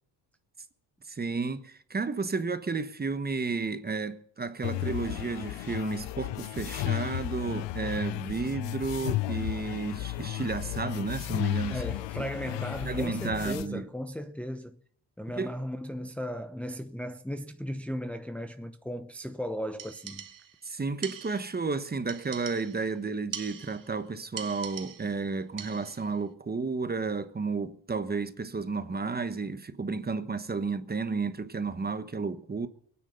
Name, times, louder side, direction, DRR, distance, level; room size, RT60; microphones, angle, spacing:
voice 1, 1.1-11.8 12.2-12.3 12.8-13.8 15.4-15.5 20.6-32.7, right 4 dB, 20° right, 1.1 m, -32 dB
sound 1, 4.6-13.6, left 17 dB, 75° left, 0.8 m, -34 dB
voice 2, 11.7-14.8 15.2-20.3, equal, 5° left, 0.8 m, -36 dB
sound 2, 19.8-20.6 21.0-21.7 22.1-22.9 23.3-24.0 24.4-25.2 25.6-26.1, right 8 dB, 50° right, 1.7 m, -42 dB
23.0 x 9.7 x 5.4 m
cardioid pair, 90°, 43 cm